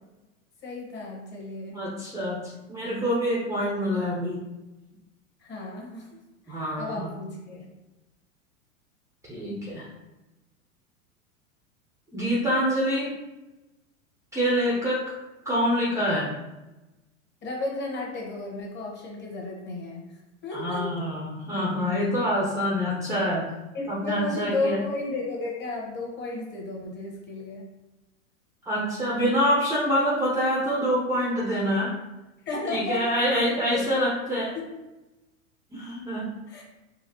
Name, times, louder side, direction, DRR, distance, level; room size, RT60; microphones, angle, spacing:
voice 1, 0.6-1.8 5.4-6.2 6.5-7.7 17.4-20.9 23.7-27.7 32.5-33.9 34.3-34.7 36.5-36.6, left 3 dB, 25° left, -2 dB, 1.1 m, -33 dB
voice 2, 1.7-2.4 2.7-4.4 6.5-7.1 9.3-9.9 12.1-13.1 14.3-15.1 15.5-16.3 20.5-23.5 23.9-24.8 28.7-32.0 32.7-34.5 35.7-36.3, equal, 10° right, -5 dB, 0.6 m, -26 dB
4.1 x 2.4 x 2.7 m, 1.0 s
hypercardioid pair, 105°, 41 cm